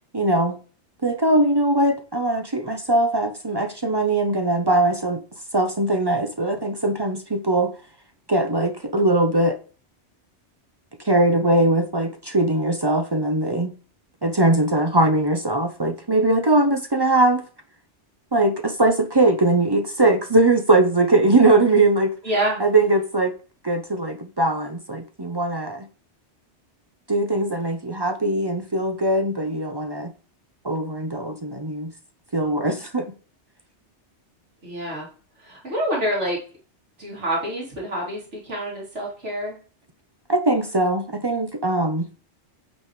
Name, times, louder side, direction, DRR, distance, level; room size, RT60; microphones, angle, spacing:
voice 1, 0.1-0.6 1.0-5.2 5.5-7.7 8.3-9.6 11.0-13.7 14.2-17.4 18.3-22.1 22.6-23.3 23.6-25.8 27.1-30.1 30.6-31.9 32.3-33.1 40.3-42.1, right 2 dB, 30° right, 0.5 m, -21 dB
voice 2, 22.2-22.6 34.6-35.1 35.4-36.4 37.0-39.6, right 1 dB, 85° right, 3.1 m, -27 dB
8.8 x 5.4 x 3.1 m
omnidirectional pair, 1.2 m